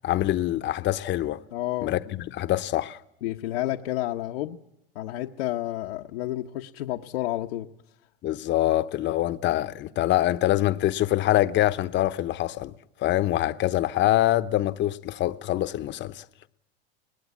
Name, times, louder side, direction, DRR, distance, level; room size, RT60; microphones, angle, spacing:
voice 1, 0.0-1.4 1.8-3.0 8.2-12.7 13.0-16.2, left 14 dB, 40° left, 0.9 m, -25 dB
voice 2, 1.5-1.9 3.2-4.6 4.9-7.7, left 15 dB, 80° left, 1.1 m, -30 dB
23.0 x 19.0 x 8.4 m
supercardioid pair, 110°, 29 cm